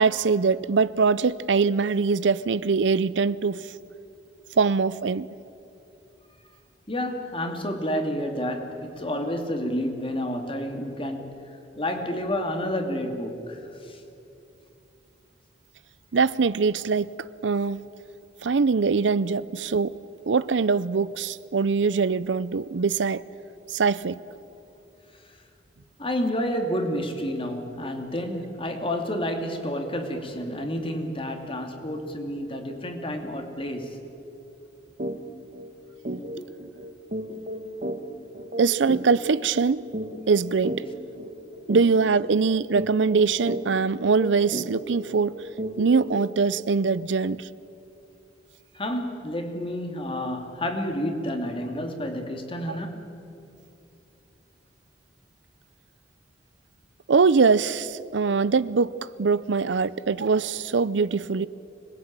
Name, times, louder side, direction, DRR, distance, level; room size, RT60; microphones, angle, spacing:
voice 1, 0.0-3.7 4.6-5.3 16.1-17.1 17.4-17.8 18.4-20.0 20.3-23.2 23.7-24.2 38.6-39.9 40.3-40.8 41.7-45.3 45.8-47.5 52.7-52.8 57.1-61.5, right 5 dB, 85° right, 0.6 m, -22 dB
voice 2, 6.9-14.0 25.2-25.4 26.0-34.0 36.4-36.5 48.7-53.2, equal, 30° left, 2.6 m, -30 dB
sound 1, 35.0-35.2 35.5-35.7 36.0-46.3, equal, 45° right, 1.5 m, -34 dB
25.5 x 20.5 x 8.9 m
head